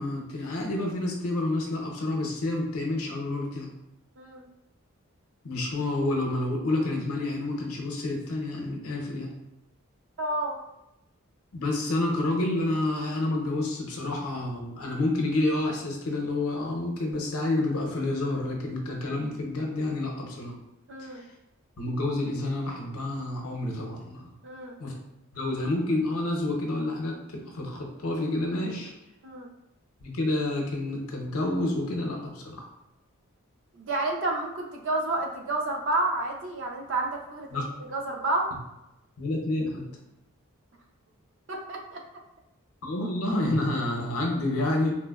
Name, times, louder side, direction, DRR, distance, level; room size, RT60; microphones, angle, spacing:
voice 1, 0.0-3.7 5.4-9.3 11.5-20.5 21.8-24.3 24.8-24.9 25.3-28.9 30.0-32.6 37.5-37.7 39.2-39.8 42.8-45.0, left 2 dB, 80° left, 1 dB, 0.6 m, -29 dB
voice 2, 4.2-4.5 10.2-10.6 20.9-21.3 24.4-24.8 29.2-29.5 33.7-37.6 37.9-38.5 41.5-42.0, right 2 dB, 55° right, 1 dB, 0.4 m, -30 dB
3.1 x 2.0 x 2.2 m, 0.89 s
head